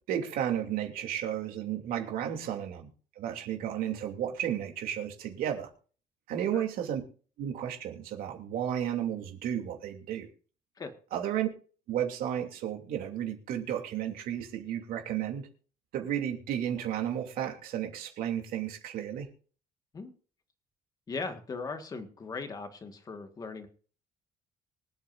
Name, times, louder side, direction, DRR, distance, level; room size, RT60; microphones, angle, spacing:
voice 1, 0.1-2.9 3.2-5.7 6.3-7.0 7.4-10.3 11.1-11.5 11.9-15.5 15.9-19.3, right 10 dB, 65° right, 2.9 m, -33 dB
voice 2, 21.1-23.7, left 4 dB, 25° left, 1.7 m, -38 dB
24.5 x 8.7 x 2.6 m
cardioid pair, 170°, 16 cm